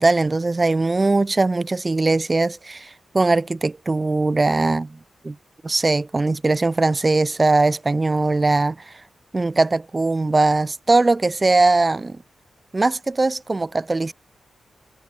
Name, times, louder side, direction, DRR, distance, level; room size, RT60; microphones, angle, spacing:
voice 1, 0.0-2.9 3.1-5.0 5.2-5.4 5.6-8.8 9.3-12.2 12.7-14.1, right 3 dB, 20° right, 0.4 m, -20 dB
wide cardioid pair, 165°, 0 cm